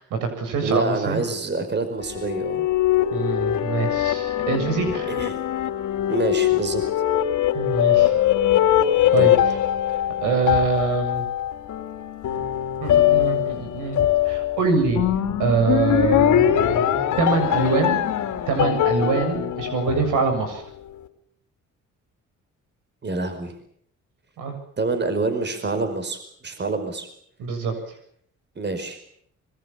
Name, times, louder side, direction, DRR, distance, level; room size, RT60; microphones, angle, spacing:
voice 1, 0.0-1.2 3.1-5.1 7.5-8.1 9.1-9.3 10.2-11.2 12.8-14.0 14.3-15.0 15.4-16.7 17.2-18.0 18.5-20.6 24.4-24.5 27.4-27.7, right 4 dB, 90° right, 7 dB, 7.5 m, -24 dB
voice 2, 0.6-2.7 5.1-5.4 6.1-6.8 9.2-9.3 23.0-23.5 24.8-26.2 26.4-27.1 28.5-29.0, right 3 dB, 35° right, 8 dB, 5.0 m, -26 dB
sound 1, 2.0-20.6, left 11 dB, 80° left, 2.9 m, -22 dB
25.5 x 22.5 x 7.3 m, 0.67 s
cardioid pair, 90°, 30 cm